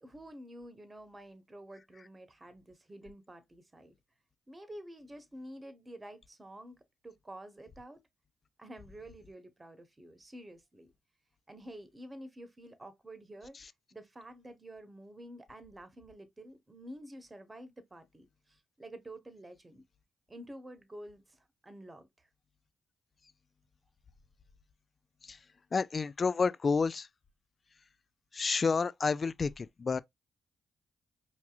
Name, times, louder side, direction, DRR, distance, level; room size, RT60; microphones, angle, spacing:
voice 1, 0.0-4.0 4.5-6.8 7.0-8.0 8.6-10.9 11.5-13.6 13.9-19.8 20.3-22.3, right 1 dB, 25° right, 1.1 m, -49 dB
voice 2, 25.7-27.1 28.3-30.0, left 4 dB, 45° left, 0.3 m, -29 dB
4.5 x 2.8 x 2.3 m
hypercardioid pair, 40°, 0 cm